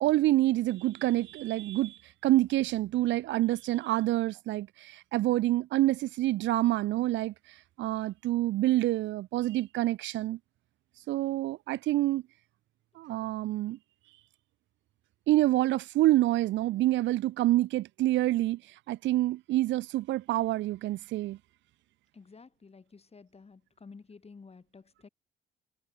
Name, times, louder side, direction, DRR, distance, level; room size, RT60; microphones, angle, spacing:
voice 1, 0.0-10.4 11.1-12.2 13.0-13.8 15.3-21.4, right 16 dB, 70° right, 0.4 m, -27 dB
voice 2, 22.1-25.1, left 4 dB, 30° left, 4.3 m, -52 dB
cardioid pair, 90°, 20 cm